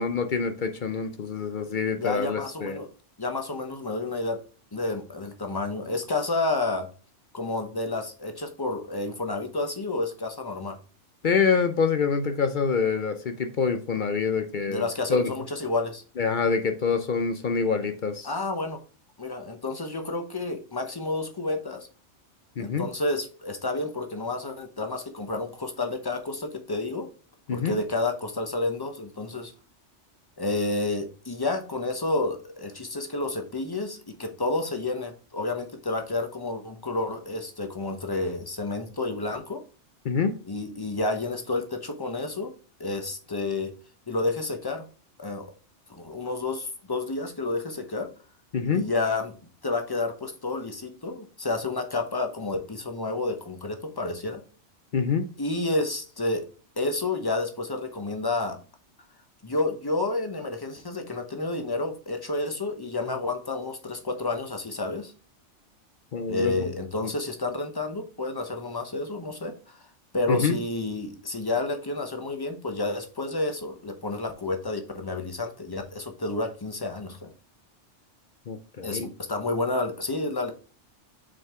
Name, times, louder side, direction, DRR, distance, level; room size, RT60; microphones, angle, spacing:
voice 1, 0.0-2.8 11.2-15.3 16.2-18.3 22.6-22.9 27.5-27.8 40.0-40.3 48.5-48.9 54.9-55.3 66.1-66.6 67.0-67.1 70.3-70.6 78.5-79.1, left 5 dB, 55° left, 8 dB, 0.6 m, -26 dB
voice 2, 2.0-2.9 3.2-4.4 4.7-6.9 7.3-10.8 14.7-16.0 18.2-18.8 19.2-21.9 22.6-27.1 27.5-29.5 30.4-39.6 40.5-42.5 42.8-43.7 44.1-44.8 45.2-45.5 45.9-48.1 48.7-49.4 49.6-54.4 55.4-56.5 56.8-58.6 59.4-65.1 66.3-69.8 70.1-77.3 78.8-80.5, left 2 dB, 20° left, 5 dB, 0.8 m, -30 dB
6.3 x 4.6 x 3.6 m, 0.37 s
omnidirectional pair, 1.2 m